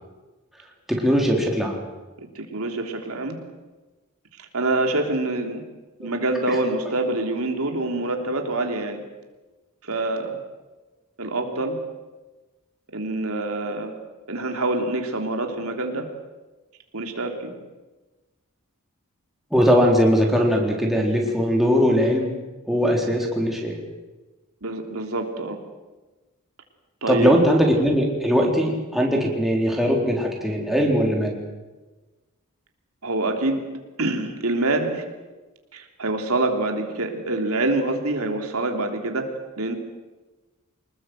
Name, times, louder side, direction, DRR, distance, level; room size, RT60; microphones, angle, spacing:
voice 1, 0.9-1.8 6.0-6.1 6.5-6.6 19.5-22.3 22.7-23.8 27.1-31.4, equal, ahead, -1 dB, 4.0 m, -20 dB
voice 2, 2.3-3.4 4.4-5.6 6.0-9.0 9.8-10.4 11.2-11.8 12.9-13.9 14.3-16.1 16.9-17.5 22.7-22.9 24.6-25.6 27.0-27.4 28.5-28.6 29.2-29.3 33.0-33.7 34.0-35.0 35.7-39.8, right 2 dB, 85° right, 3 dB, 3.3 m, -26 dB
25.5 x 20.5 x 7.9 m, 1.2 s
head